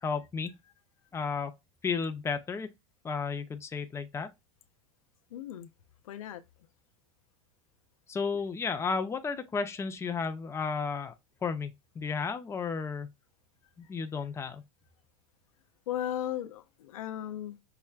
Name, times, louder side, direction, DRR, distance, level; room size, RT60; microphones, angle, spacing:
voice 1, 0.0-0.5 1.1-1.5 1.8-2.7 3.0-4.3 8.1-11.1 11.4-13.1 13.9-14.6, left 5 dB, 15° left, 0.6 m, -33 dB
voice 2, 5.3-5.7 6.0-6.4 15.9-17.6, left 11 dB, 80° left, 0.6 m, -36 dB
5.7 x 2.1 x 2.4 m
hypercardioid pair, 100°, 17 cm